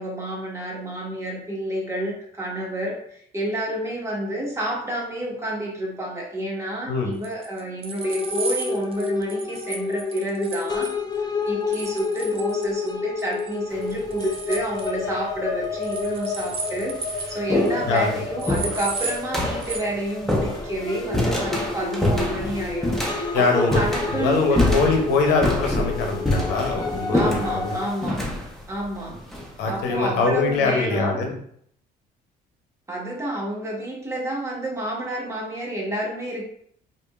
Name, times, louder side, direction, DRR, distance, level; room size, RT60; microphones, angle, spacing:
voice 1, 0.0-10.9 11.2-24.7 27.1-28.2 28.7-29.2 29.7-31.2 32.9-36.4, right 1 dB, 15° right, -3 dB, 1.3 m, -29 dB
sound 1, 7.2-10.9 11.7-12.9 13.2-13.5 13.8-14.9 15.8-17.4 17.7-17.8 18.0-18.1 18.4-19.2 19.6-19.8, right 4 dB, 35° right, 0.5 m, -33 dB
sound 2, 8.0-27.9, left 4 dB, 25° left, 0.5 m, -30 dB
sound 3, 13.7-14.1 15.1-15.2 16.0-16.1 16.5-30.0, left 1 dB, ahead, 0.9 m, -27 dB
voice 2, 23.3-23.8 24.1-27.8 29.6-31.3, left 4 dB, 85° left, 2 dB, 0.8 m, -23 dB
4.9 x 2.6 x 2.4 m, 0.65 s
cardioid pair, 110°, 17 cm